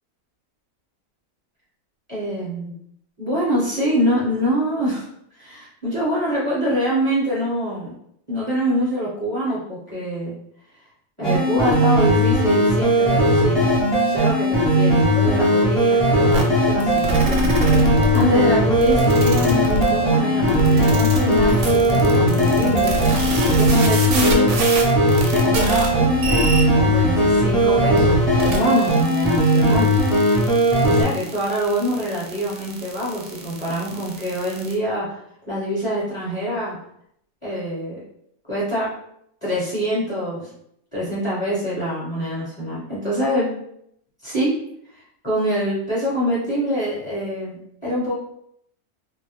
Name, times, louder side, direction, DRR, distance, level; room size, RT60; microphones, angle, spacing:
voice 1, 2.1-2.7 3.2-5.1 5.3-7.9 8.3-10.3 11.2-13.6 14.0-17.5 17.8-22.9 23.3-24.5 25.3-29.9 30.8-35.2 35.5-36.8 37.4-38.0 38.5-38.9 39.4-40.5 40.9-43.5 44.2-44.5 44.9-48.1, equal, 25° left, -9 dB, 0.9 m, -25 dB
sound 1, 11.2-31.0, equal, ahead, 0.4 m, -18 dB
sound 2, 16.3-16.4 16.8-18.2 18.8-19.9 20.5-34.7, right 3 dB, 70° right, 0.8 m, -26 dB
sound 3, 17.5-23.4, left 2 dB, 65° left, 0.6 m, -30 dB
2.5 x 2.0 x 3.1 m, 0.72 s
omnidirectional pair, 1.5 m